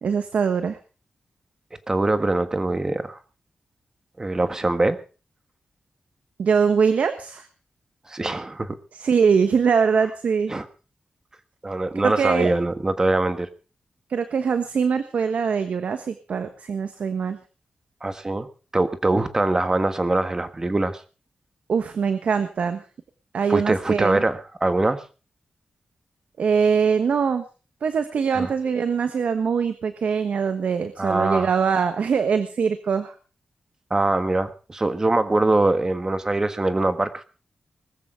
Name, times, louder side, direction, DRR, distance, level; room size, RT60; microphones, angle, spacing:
voice 1, 0.0-0.8 6.4-7.5 8.9-10.5 12.0-12.5 14.1-17.4 21.7-22.8 23.3-24.2 26.4-27.4 27.8-33.1, right 6 dB, 75° right, 9 dB, 1.3 m, -22 dB
voice 2, 1.9-3.2 4.2-5.0 8.1-8.8 10.5-10.6 11.6-13.5 18.0-18.5 18.7-21.0 23.5-25.0 28.3-28.5 31.0-31.5 33.9-37.2, right 2 dB, 25° right, 10 dB, 1.5 m, -23 dB
20.0 x 14.5 x 3.8 m, 0.35 s
wide cardioid pair, 115°, 3 cm